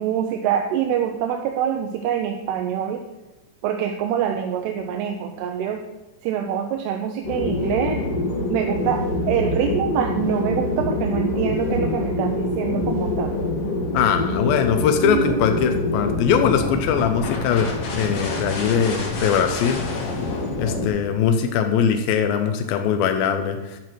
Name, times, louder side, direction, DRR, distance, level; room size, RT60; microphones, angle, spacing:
voice 1, 0.0-3.0 3.6-5.8 6.2-8.0 8.5-13.3 15.0-15.4, right 9 dB, 80° right, 4 dB, 2.6 m, -25 dB
sound 1, 7.2-20.9, left 2 dB, 60° left, 1.6 m, -26 dB
voice 2, 13.9-19.8 20.6-23.8, left 7 dB, 90° left, 6 dB, 2.1 m, -21 dB
14.0 x 5.9 x 4.6 m, 1.1 s
omnidirectional pair, 5.1 m